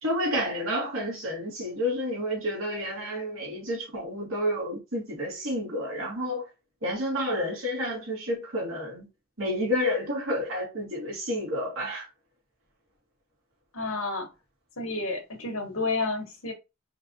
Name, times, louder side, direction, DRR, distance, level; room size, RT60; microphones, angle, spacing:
voice 1, 0.0-6.5 6.8-9.1 9.4-12.1, equal, 75° right, 2.7 m, -30 dB
voice 2, 13.7-14.3 14.8-16.5, left 3 dB, 90° left, 1.6 m, -30 dB
5.0 x 3.3 x 2.9 m
head